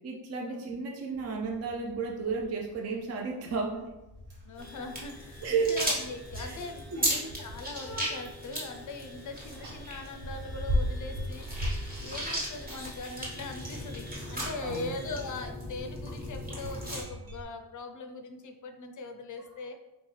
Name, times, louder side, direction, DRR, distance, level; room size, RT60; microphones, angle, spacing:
voice 1, 0.0-3.9 5.4-5.8 6.4-6.6 6.9-7.0 14.6-15.0 19.6-19.7, right 5 dB, 35° right, 1 dB, 0.4 m, -32 dB
Bicycle, 1.1-17.4, left 1 dB, 75° right, 1.5 m, -39 dB
voice 2, 4.4-11.5 12.0-19.7, left 3 dB, 45° left, 5 dB, 0.5 m, -41 dB
sound 1, 4.6-15.5, left 1 dB, ahead, 0.8 m, -52 dB
sound 2, 4.6-17.0, equal, 20° right, 1.0 m, -37 dB
4.1 x 3.4 x 3.2 m, 0.99 s
wide cardioid pair, 165°, 43 cm